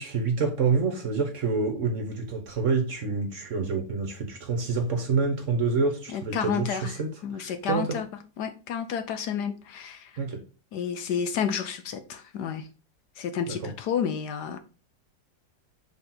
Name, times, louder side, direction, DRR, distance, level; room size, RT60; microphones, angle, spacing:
voice 1, 0.0-8.0 10.2-10.4 13.5-13.7, right 4 dB, 50° right, 1.2 m, -27 dB
voice 2, 6.1-7.0 7.2-8.1 8.4-10.1 10.7-12.7 13.2-14.6, left 7 dB, 70° left, 1.2 m, -30 dB
5.8 x 3.8 x 4.2 m
omnidirectional pair, 2.0 m